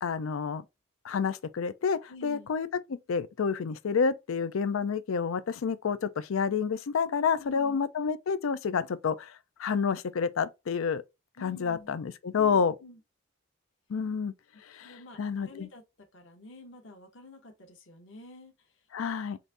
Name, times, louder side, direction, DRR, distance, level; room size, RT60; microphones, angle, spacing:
voice 1, 0.0-0.6 1.0-11.0 11.4-12.7 13.9-14.3 14.6-15.7 18.9-19.4, left 6 dB, 90° left, 0.4 m, -29 dB
voice 2, 2.1-2.5 7.4-7.8 11.4-11.9 12.3-13.0 14.8-15.2 15.4-15.8 16.1-18.8, left 2 dB, 65° left, 1.0 m, -49 dB
4.0 x 2.5 x 3.3 m
head